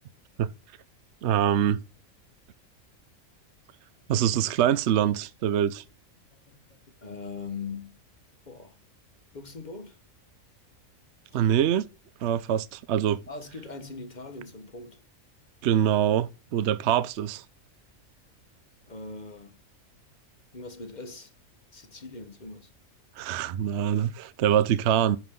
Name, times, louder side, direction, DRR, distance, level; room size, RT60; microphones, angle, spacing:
voice 1, 1.2-1.8 4.1-5.8 11.3-11.9 12.2-13.2 15.6-17.4 23.2-25.2, right 10 dB, 60° right, 0.8 m, -24 dB
voice 2, 6.3-8.0 8.5-8.8 9.3-10.0 13.3-15.0 18.9-19.6 20.5-21.3 21.7-22.7, left 4 dB, 35° left, 1.2 m, -41 dB
11.0 x 5.8 x 3.7 m
omnidirectional pair, 1.4 m